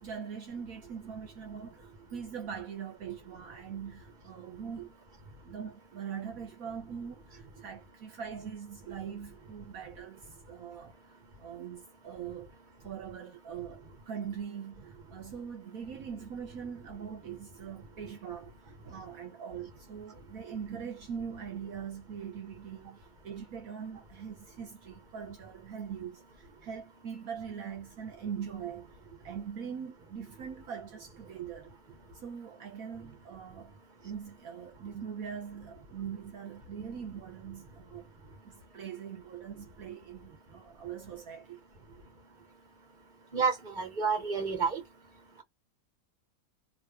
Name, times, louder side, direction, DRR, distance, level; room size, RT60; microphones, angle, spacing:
voice 1, 0.0-4.9 5.4-10.9 11.4-12.5 12.8-28.9 29.2-31.7 32.2-33.7 34.0-38.1 38.4-41.6, right 7 dB, 70° right, 1.3 m, -42 dB
voice 2, 43.3-44.8, right 5 dB, 35° right, 1.6 m, -29 dB
3.0 x 2.8 x 3.5 m
omnidirectional pair, 1.6 m